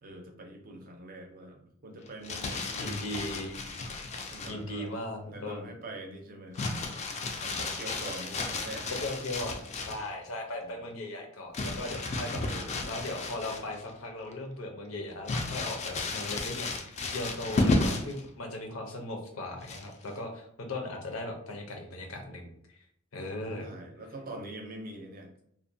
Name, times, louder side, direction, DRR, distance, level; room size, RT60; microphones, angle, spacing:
voice 1, 0.0-3.5 4.1-4.9 5.2-9.0 10.6-10.8 12.2-12.8 20.0-20.2 23.6-25.3, right 1 dB, 45° right, 3 dB, 0.5 m, -44 dB
Crumpling crinkling, 2.1-4.6 6.5-10.1 11.5-13.9 14.3-14.4 15.3-18.2 19.6-20.1, left 2 dB, 35° left, 0.3 m, -33 dB
voice 2, 2.8-3.6 4.5-5.7 9.0-12.4 12.8-22.8 23.1-23.7, left 1 dB, 90° left, 2 dB, 0.6 m, -38 dB
2.5 x 2.1 x 2.6 m, 0.72 s
head